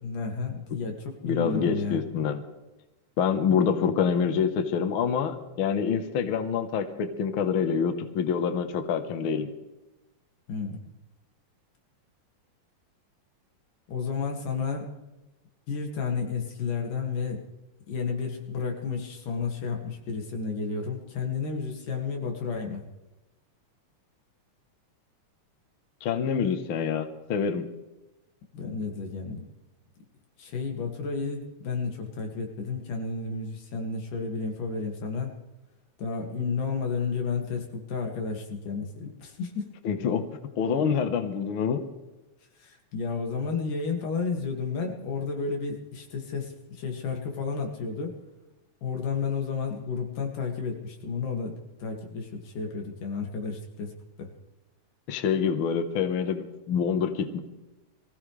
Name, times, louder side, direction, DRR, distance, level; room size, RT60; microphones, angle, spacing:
voice 1, 0.0-2.0 10.5-10.8 13.9-14.9 15.7-17.4 17.9-22.9 28.5-29.5 30.4-35.3 36.0-39.7 42.6-48.2 48.8-54.3, left 5 dB, 90° left, 2 dB, 3.8 m, -32 dB
voice 2, 1.2-2.4 3.2-9.5 26.0-27.6 39.8-40.3 40.6-41.8 55.1-57.4, left 7 dB, 55° left, 8 dB, 1.6 m, -26 dB
24.0 x 15.5 x 3.3 m, 1.0 s
omnidirectional pair, 3.6 m